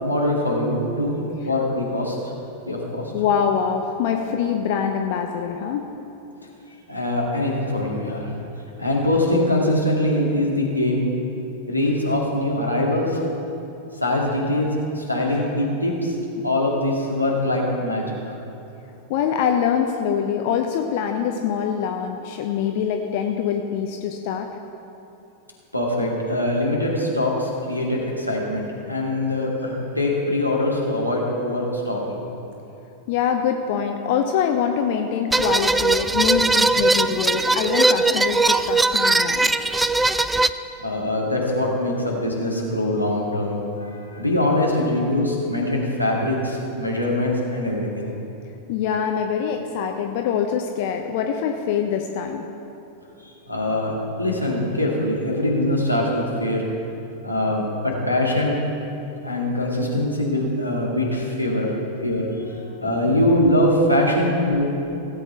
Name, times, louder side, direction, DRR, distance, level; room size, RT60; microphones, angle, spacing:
voice 1, 0.0-1.2 1.5-2.1 2.7-3.0 6.9-8.3 8.8-11.0 11.7-13.2 14.0-16.2 16.4-18.3 25.7-32.2 40.8-48.1 53.2-53.9 54.2-56.6 57.2-58.6 59.2-61.7 62.0-62.3 62.8-64.7, left 1 dB, 90° left, -3 dB, 2.1 m, -23 dB
voice 2, 3.1-5.9 15.3-15.5 19.1-24.5 33.1-39.5 48.7-52.4 61.8-63.0, left 7 dB, 50° left, 4 dB, 0.7 m, -24 dB
sound 1, 35.3-40.5, right 3 dB, 5° right, 0.3 m, -19 dB
17.0 x 8.0 x 4.6 m, 2.9 s
figure-of-eight pair, 90°, 0 cm